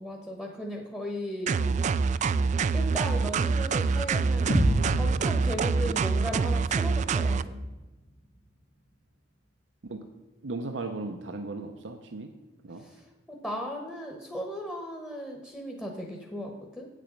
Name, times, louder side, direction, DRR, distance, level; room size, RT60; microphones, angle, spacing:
voice 1, 0.0-1.7 2.7-4.5 5.0-7.6 12.8-13.0 13.3-16.9, equal, 5° left, 0 dB, 1.0 m, -36 dB
sound 1, 1.5-7.4, right 4 dB, 40° right, 0.3 m, -26 dB
sound 2, 4.5-8.5, equal, 80° left, 2.0 m, -31 dB
voice 2, 10.4-12.3 12.6-12.9, right 3 dB, 85° right, 5 dB, 0.7 m, -36 dB
8.5 x 7.4 x 5.2 m, 1.1 s
head